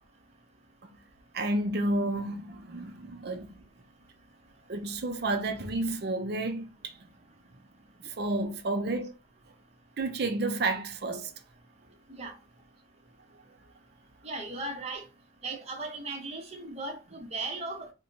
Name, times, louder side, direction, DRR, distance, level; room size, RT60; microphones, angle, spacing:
voice 1, 1.3-3.5 4.7-7.0 8.0-9.1 10.0-11.3, right 2 dB, 55° right, 0.6 m, -31 dB
voice 2, 14.2-15.0 15.4-17.9, right 2 dB, 35° right, 0.9 m, -37 dB
4.2 x 2.2 x 2.7 m
head